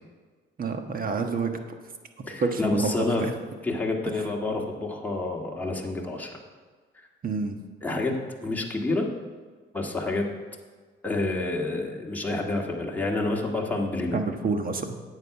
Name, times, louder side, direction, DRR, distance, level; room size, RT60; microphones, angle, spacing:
voice 1, 0.6-1.6 2.4-3.3 7.2-7.6 14.1-15.0, right 4 dB, 45° right, 5 dB, 1.3 m, -28 dB
voice 2, 2.2-3.2 3.6-6.4 7.0-7.1 7.8-8.1 8.4-9.1 9.7-10.2 11.0-14.2, left 2 dB, 10° left, -1 dB, 1.9 m, -28 dB
9.3 x 8.2 x 6.0 m, 1.5 s
cardioid pair, 90°, 20 cm